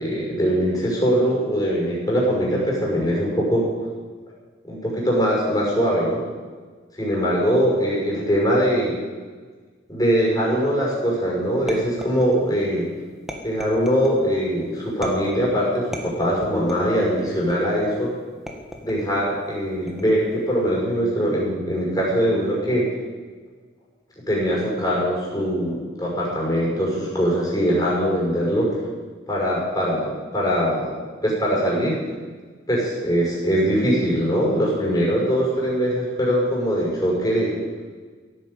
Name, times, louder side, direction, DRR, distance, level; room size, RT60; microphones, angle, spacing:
voice 1, 0.0-3.7 4.7-6.2 7.0-9.0 9.9-12.9 13.4-18.1 18.8-22.9 24.3-28.8 29.3-31.0 31.2-32.0 32.7-37.6, equal, 20° left, -4 dB, 6.0 m, -22 dB
sound 1, 11.7-12.6 13.3-14.2 15.0-15.5 15.9-17.0 17.5-17.9 18.5-19.1 19.9-20.3, equal, ahead, 1.7 m, -36 dB
16.5 x 9.4 x 8.5 m, 1.5 s
head